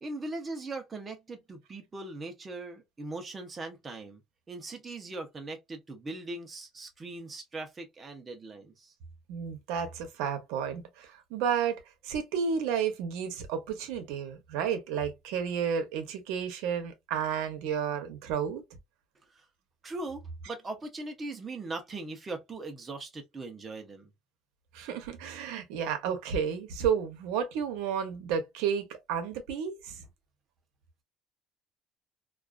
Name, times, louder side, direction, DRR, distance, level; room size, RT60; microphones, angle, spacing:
voice 1, 0.0-4.2 4.5-8.9 19.3-19.4 19.8-24.1, right 2 dB, 20° right, 0.5 m, -40 dB
voice 2, 9.3-18.6 24.7-30.0, right 7 dB, 90° right, 0.7 m, -32 dB
2.3 x 2.3 x 2.3 m
cardioid pair, 155°, 0 cm